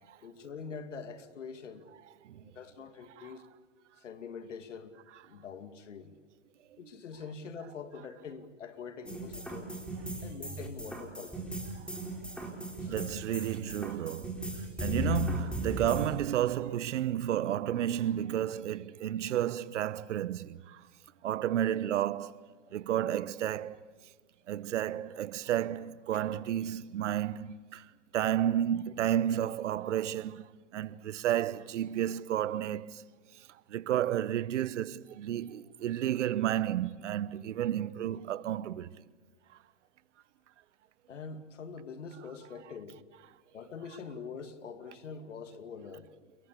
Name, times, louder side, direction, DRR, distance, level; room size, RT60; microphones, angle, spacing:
voice 1, 0.0-1.9 2.4-3.4 4.0-5.0 5.3-6.1 6.8-9.8 10.2-11.5 12.8-12.9 41.1-43.0 43.5-46.1, left 5 dB, 90° left, 2.5 m, -44 dB
sound 1, 9.1-16.1, left 1 dB, 5° left, 4.3 m, -37 dB
voice 2, 12.9-14.4 14.8-20.8 21.2-22.4 22.7-23.8 24.5-27.8 28.1-30.5 30.7-32.9 33.7-38.9, right 11 dB, 80° right, 1.1 m, -31 dB
28.5 x 22.5 x 8.5 m
hypercardioid pair, 115°, 36 cm